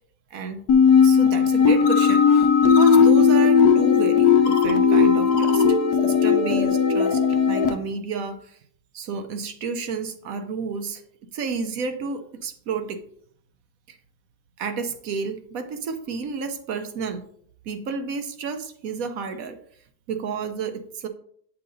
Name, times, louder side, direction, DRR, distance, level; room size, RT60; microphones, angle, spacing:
voice 1, 0.3-0.6 1.0-7.2 7.5-8.6 8.9-11.0 11.3-13.0 13.9-14.0 14.6-17.2 17.6-19.6 20.1-21.1, right 5 dB, 70° right, 7 dB, 1.1 m, -31 dB
sound 1, 0.7-7.7, left 6 dB, 85° left, 1.3 m, -17 dB
8.7 x 5.6 x 2.7 m, 0.62 s
omnidirectional pair, 1.6 m